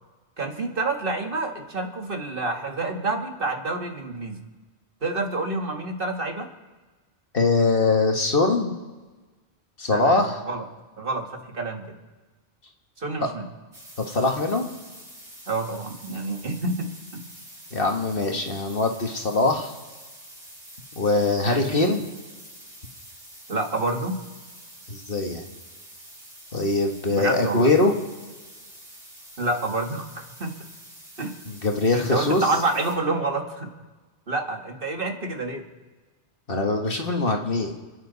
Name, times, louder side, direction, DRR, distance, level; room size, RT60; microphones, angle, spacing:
voice 1, 0.4-4.4 5.0-6.5 9.9-10.7 11.0-12.0 13.0-13.5 15.5-17.3 21.4-21.9 23.5-24.2 27.1-27.7 29.4-30.5 31.2-31.4 31.9-33.7 34.3-35.7, right 2 dB, 50° right, 3 dB, 1.8 m, -28 dB
voice 2, 7.3-8.7 9.8-10.4 14.0-14.7 17.7-19.7 21.0-22.0 24.9-25.4 26.5-27.9 31.5-32.4 36.5-37.7, left 3 dB, 50° left, 2 dB, 1.8 m, -22 dB
sound 1, 13.7-33.0, right 1 dB, 90° right, 7.2 m, -46 dB
29.0 x 10.0 x 4.1 m, 1.3 s
omnidirectional pair, 1.2 m